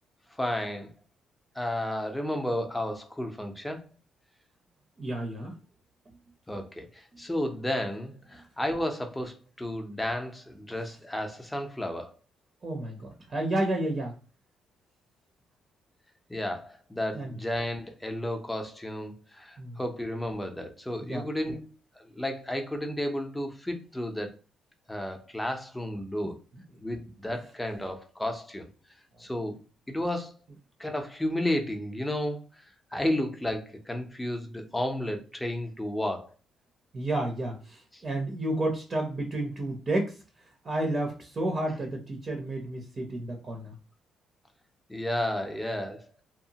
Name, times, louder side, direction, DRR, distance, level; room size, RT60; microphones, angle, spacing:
voice 1, 0.4-0.9 1.5-3.8 6.5-12.1 16.3-21.6 22.0-24.3 24.9-26.4 26.8-28.7 29.2-29.6 29.9-30.4 30.8-32.6 32.9-36.3 37.9-38.0 44.9-46.2, left 1 dB, 10° left, 0.6 m, -32 dB
voice 2, 5.0-5.6 12.6-14.1 17.1-17.3 19.6-19.8 21.0-21.5 36.9-40.2 40.6-43.7, right 1 dB, 40° right, 0.6 m, -31 dB
2.8 x 2.0 x 2.7 m
cardioid pair, 90°, 0 cm